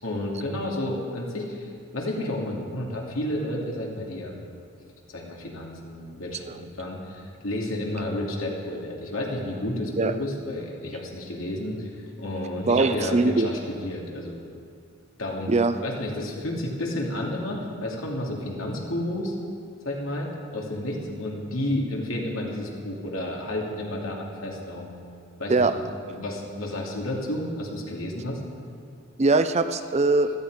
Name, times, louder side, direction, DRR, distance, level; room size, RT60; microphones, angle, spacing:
voice 1, 0.0-4.5 5.1-11.9 12.2-14.4 15.2-15.5 15.8-19.4 19.8-24.9 25.4-25.7 26.1-28.4, left 1 dB, 90° left, -2 dB, 2.7 m, -31 dB
voice 2, 12.6-13.5 15.5-15.7 25.5-25.7 29.2-30.3, right 3 dB, 35° right, 9 dB, 0.6 m, -21 dB
16.0 x 13.5 x 5.0 m, 2.4 s
head